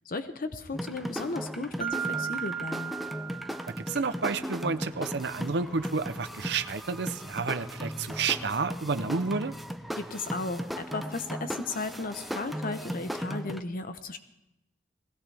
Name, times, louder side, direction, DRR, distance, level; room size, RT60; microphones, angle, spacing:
voice 1, 0.1-3.0 10.0-14.2, left 3 dB, 50° left, 9 dB, 0.8 m, -35 dB
sound 1, 0.7-13.6, equal, ahead, 0.5 m, -37 dB
Mallet percussion, 1.8-4.4, right 9 dB, 30° right, 1.1 m, -36 dB
voice 2, 3.8-9.5, right 4 dB, 65° right, 11 dB, 0.7 m, -30 dB
19.5 x 16.5 x 3.4 m, 0.90 s
head